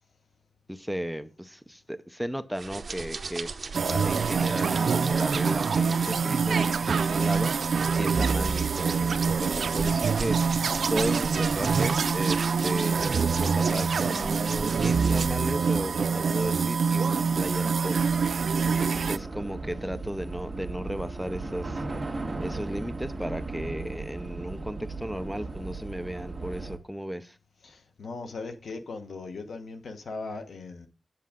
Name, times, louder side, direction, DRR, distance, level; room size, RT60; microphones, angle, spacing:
voice 1, 0.7-3.5 3.9-21.8 22.1-27.4, equal, ahead, 0.6 m, -35 dB
sound 1, 2.6-15.3, right 4 dB, 60° right, 0.8 m, -37 dB
sound 2, 3.7-19.2, right 5 dB, 80° right, 0.4 m, -25 dB
Train / Subway metro underground, 14.2-26.8, right 3 dB, 25° right, 1.6 m, -37 dB
voice 2, 27.6-30.9, left 3 dB, 90° left, 1.1 m, -38 dB
8.4 x 7.6 x 3.7 m
wide cardioid pair, 110°, 0 cm